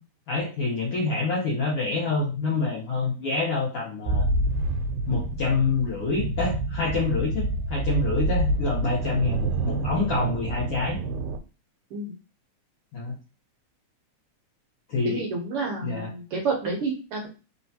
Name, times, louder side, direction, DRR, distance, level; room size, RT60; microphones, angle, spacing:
voice 1, 0.3-4.2 5.1-11.0 12.9-13.1 14.9-15.2 15.8-16.1, left 3 dB, 65° left, -4 dB, 1.6 m, -27 dB
sound 1, 4.1-11.4, right 2 dB, 85° right, 2.0 m, -27 dB
voice 2, 15.0-17.3, right 3 dB, 65° right, 0 dB, 1.4 m, -29 dB
4.3 x 3.5 x 2.7 m, 0.32 s
omnidirectional pair, 3.4 m